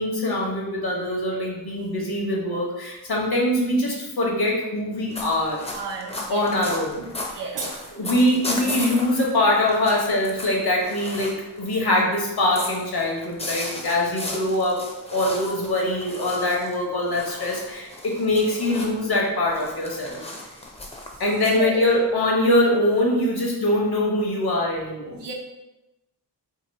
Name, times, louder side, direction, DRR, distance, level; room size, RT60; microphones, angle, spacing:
voice 1, 0.0-5.7 6.3-7.1 7.9-20.2 21.2-25.2, left 1 dB, 65° left, -2 dB, 1.1 m, -23 dB
sound 1, 5.1-11.8 12.1-19.1 19.5-22.1, left 1 dB, 15° left, 0.5 m, -35 dB
voice 2, 5.7-6.5 7.3-7.7 21.6-21.8 25.1-25.3, right 5 dB, 90° right, 1 dB, 0.8 m, -31 dB
2.9 x 2.9 x 4.1 m, 0.97 s
wide cardioid pair, 125°, 41 cm